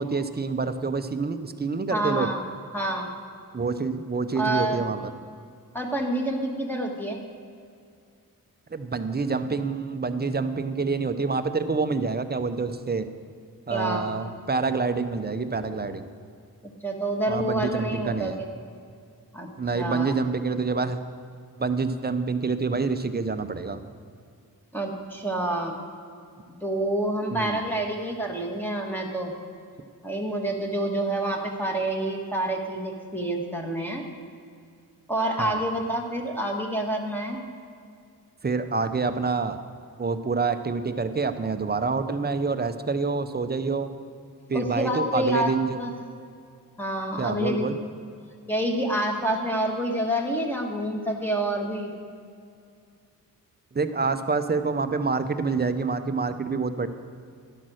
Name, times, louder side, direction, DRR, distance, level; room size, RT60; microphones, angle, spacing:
voice 1, 0.0-2.3 3.5-5.1 8.7-13.1 13.7-16.1 17.3-18.4 19.6-21.0 21.6-23.8 27.3-27.6 35.4-35.6 38.4-39.6 40.0-43.9 44.5-45.8 47.2-47.8 53.7-56.9, right 4 dB, 25° right, 10 dB, 0.6 m, -27 dB
voice 2, 1.9-2.4 2.7-3.1 4.3-4.9 5.7-7.2 13.7-14.1 16.8-18.5 19.3-19.5 19.7-20.2 24.7-25.8 26.6-29.3 30.0-34.0 35.1-37.4 44.5-45.9 46.8-47.8 48.5-51.9, right 1 dB, 5° left, 0 dB, 1.4 m, -28 dB
11.5 x 8.4 x 6.3 m, 2.3 s
wide cardioid pair, 115°, 36 cm